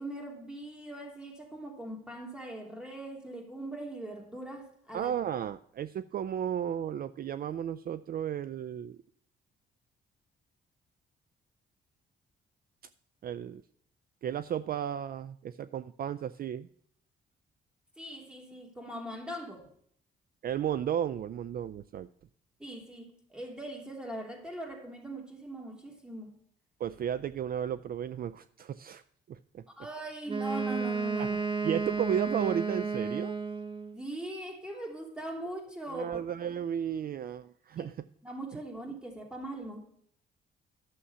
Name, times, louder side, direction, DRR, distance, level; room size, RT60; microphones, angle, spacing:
voice 1, 0.0-5.1 18.0-19.7 22.6-26.3 29.8-31.7 33.9-36.6 37.8-37.9 38.2-39.8, right 1 dB, 5° right, 2.9 m, -41 dB
voice 2, 4.9-9.0 13.2-13.6 14.2-16.7 20.4-22.1 26.8-29.0 29.3-29.6 31.2-31.3 31.6-33.4 35.9-38.0, right 9 dB, 50° right, 0.4 m, -34 dB
Wind instrument woodwind instrument, 30.3-34.0, right 4 dB, 25° right, 1.0 m, -32 dB
11.5 x 7.1 x 5.6 m
cardioid pair, 90°, 20 cm